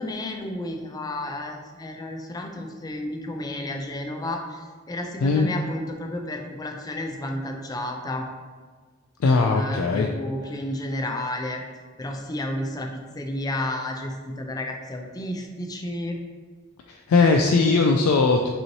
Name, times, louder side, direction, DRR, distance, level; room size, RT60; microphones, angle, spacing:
voice 1, 0.0-4.6 4.9-8.3 9.5-11.6 12.0-12.9 13.2-16.2, left 1 dB, 20° left, 2 dB, 0.4 m, -31 dB
voice 2, 9.2-10.1 16.9-18.5, left 3 dB, 85° left, 2 dB, 0.3 m, -19 dB
5.3 x 3.0 x 2.8 m, 1.5 s
head